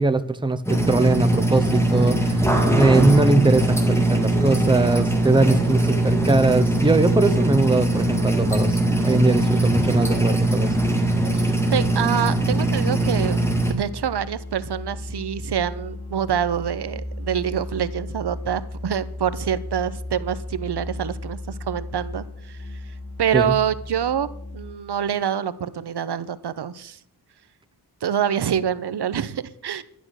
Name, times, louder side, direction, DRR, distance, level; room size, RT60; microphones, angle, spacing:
voice 1, 0.0-2.5 2.8-10.8 23.3-23.6, right 2 dB, 10° right, 10 dB, 0.7 m, -21 dB
sound 1, 0.7-13.7, right 1 dB, 5° left, 2.4 m, -21 dB
voice 2, 11.3-13.4 13.7-22.6 23.2-24.3 24.5-27.0 28.0-29.8, right 9 dB, 80° right, 14 dB, 0.8 m, -26 dB
Musical instrument, 13.0-25.0, left 1 dB, 65° left, 2.9 m, -35 dB
11.5 x 11.5 x 6.4 m, 0.70 s
wide cardioid pair, 140°, 39 cm